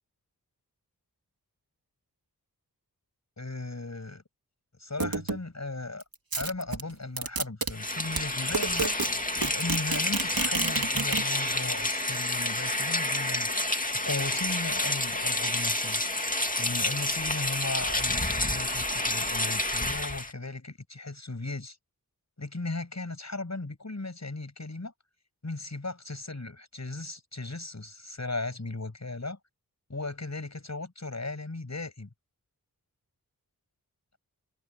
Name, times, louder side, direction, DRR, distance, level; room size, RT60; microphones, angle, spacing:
voice 1, 3.4-4.2 4.8-6.0 6.4-8.9 9.4-13.8 14.0-16.0 16.6-21.8 22.4-24.9 25.4-29.4 29.9-32.1, left 2 dB, 45° left, 7.1 m, -36 dB
sound 1, 5.0-5.4 6.0-7.7 8.2-8.3 8.5-9.1 9.4-11.2, right 4 dB, 65° right, 3.4 m, -29 dB
Rain, 7.7-20.3, left 1 dB, 20° left, 2.4 m, -29 dB
wide cardioid pair, 55°, 38 cm